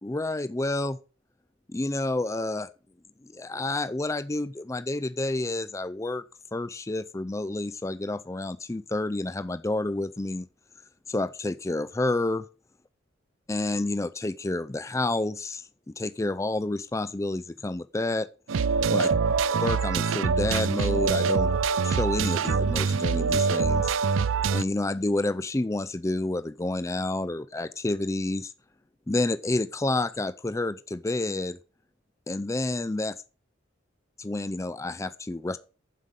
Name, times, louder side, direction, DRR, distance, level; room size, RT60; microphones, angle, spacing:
voice 1, 0.0-1.0 1.7-2.7 3.2-6.2 6.5-10.5 11.1-12.5 13.5-15.7 16.0-18.3 18.9-19.1 19.6-21.5 21.8-23.9 24.5-28.5 29.1-31.6 32.3-33.2 34.2-35.6, left 2 dB, 15° left, 0.4 m, -29 dB
sound 1, 18.5-24.6, right 5 dB, 85° right, 0.5 m, -24 dB
7.6 x 5.2 x 7.4 m
head